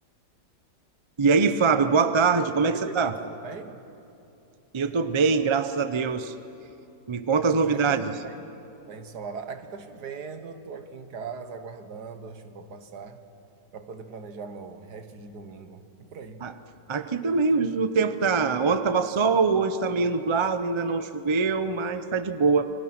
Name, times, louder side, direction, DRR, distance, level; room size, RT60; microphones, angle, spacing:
voice 1, 1.2-3.1 4.7-6.3 7.1-8.1 16.4-16.5 16.9-22.8, right 4 dB, 40° right, 10 dB, 0.4 m, -23 dB
voice 2, 2.7-3.8 7.6-8.5 8.9-13.2 13.7-16.5, right 5 dB, 65° right, 8 dB, 1.8 m, -40 dB
29.0 x 24.0 x 6.0 m, 2.8 s
omnidirectional pair, 1.9 m